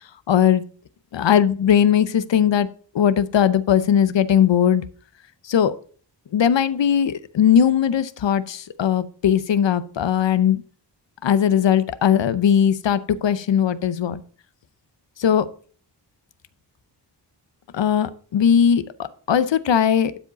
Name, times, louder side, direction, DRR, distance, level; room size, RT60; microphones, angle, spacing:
voice 1, 0.3-0.6 1.1-2.7 2.9-4.8 5.4-5.7 6.3-10.6 11.2-14.2 15.2-15.5 17.7-20.1, left 8 dB, 80° left, 14 dB, 0.7 m, -19 dB
12.0 x 5.0 x 4.0 m, 0.42 s
wide cardioid pair, 120°, 43 cm